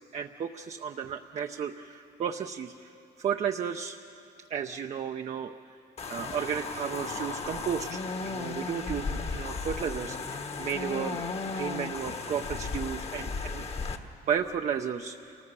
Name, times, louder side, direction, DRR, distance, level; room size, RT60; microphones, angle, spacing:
voice 1, 0.0-2.9 3.2-4.0 4.5-5.5 6.1-13.6 14.0-15.4, right 7 dB, 40° right, 4 dB, 0.7 m, -33 dB
sound 1, 6.0-14.0, left 4 dB, 35° left, 1.4 m, -35 dB
sound 2, 6.2-13.6, left 4 dB, 65° left, 3.1 m, -55 dB
28.5 x 19.0 x 6.9 m, 2.7 s
cardioid pair, 110°, 17 cm